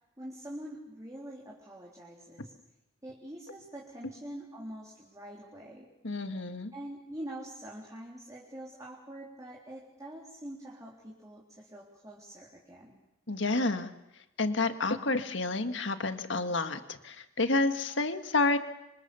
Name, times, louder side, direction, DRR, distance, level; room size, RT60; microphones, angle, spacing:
voice 1, 0.2-2.5 3.0-5.9 6.7-13.0, right 1 dB, 20° right, -3 dB, 3.6 m, -45 dB
voice 2, 6.0-6.7 13.3-13.9 14.4-18.6, left 3 dB, 70° left, 8 dB, 1.8 m, -29 dB
26.5 x 25.5 x 7.0 m, 0.95 s
head